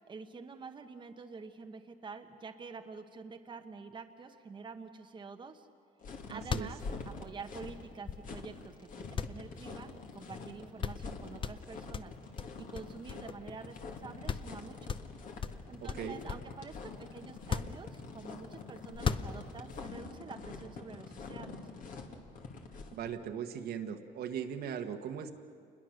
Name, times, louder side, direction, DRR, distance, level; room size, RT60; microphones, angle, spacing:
voice 1, 0.0-5.7 6.3-6.8 7.2-12.1 12.6-15.0 15.7-21.7, right 4 dB, 30° right, 5 dB, 1.1 m, -47 dB
sound 1, 6.0-23.1, left 4 dB, 50° left, 2.5 m, -46 dB
sound 2, 6.1-6.2 6.4-8.6 9.1-10.2 10.5-10.6 10.8-11.1 11.4-13.6 13.9-14.0 14.3-14.6 14.9-16.6 17.3-18.3 18.9-19.7, left 6 dB, 30° left, 0.7 m, -37 dB
voice 2, 6.3-6.7 15.8-16.2 22.9-25.3, right 8 dB, 65° right, 6 dB, 1.5 m, -39 dB
28.0 x 21.0 x 6.5 m, 2.3 s
cardioid pair, 110°, 17 cm